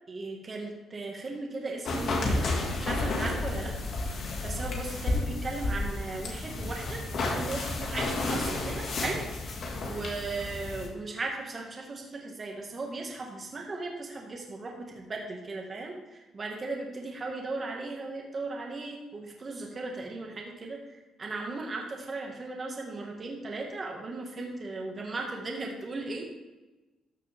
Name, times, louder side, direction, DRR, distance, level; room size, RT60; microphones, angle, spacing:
voice 1, 0.1-3.8 4.4-7.0 7.4-9.5 9.8-26.2, right 3 dB, 35° right, 0 dB, 1.8 m, -37 dB
sound 1, 1.9-10.9, left 2 dB, 60° left, 2.1 m, -31 dB
13.5 x 6.6 x 3.6 m, 1.1 s
cardioid pair, 90°, 0 cm